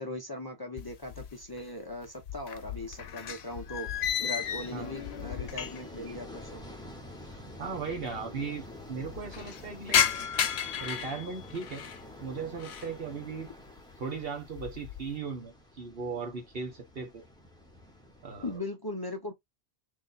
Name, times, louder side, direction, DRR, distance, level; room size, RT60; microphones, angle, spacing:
voice 1, 0.0-3.9 4.2-6.6 18.4-19.3, left 2 dB, 25° left, 0.7 m, -39 dB
sound 1, 0.8-1.6 1.9-6.0 6.3-6.4 7.3-7.4 7.5-7.6 7.9-8.4 8.8-12.0 12.4-13.0 13.4-13.8 14.2-15.1, left 9 dB, 80° left, 0.9 m, -33 dB
sound 2, 2.6-18.6, left 1 dB, 5° left, 1.0 m, -49 dB
voice 2, 7.3-10.0 10.8-11.8 12.2-13.5 14.0-17.2 18.2-18.6, right 5 dB, 65° right, 1.4 m, -37 dB
3.2 x 2.8 x 4.0 m
omnidirectional pair, 1.0 m